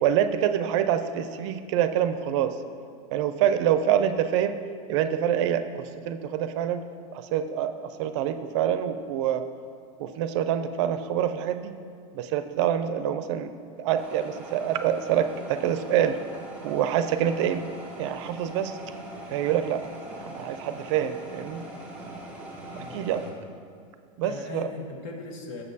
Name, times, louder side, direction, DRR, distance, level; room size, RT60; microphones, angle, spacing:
voice 1, 0.0-2.6 3.1-4.6 4.9-6.8 7.1-9.4 10.0-11.7 12.1-16.2 16.6-17.7 18.0-18.8 19.3-19.8 20.2-21.7 22.8-23.3 24.2-24.7, right 10 dB, 60° right, 10 dB, 0.4 m, -26 dB
sound 1, 13.9-23.3, right 1 dB, 5° right, 0.9 m, -42 dB
voice 2, 22.7-23.3 24.2-25.6, left 3 dB, 65° left, 3 dB, 1.0 m, -39 dB
7.3 x 6.6 x 2.7 m, 2.3 s
supercardioid pair, 155°, 18 cm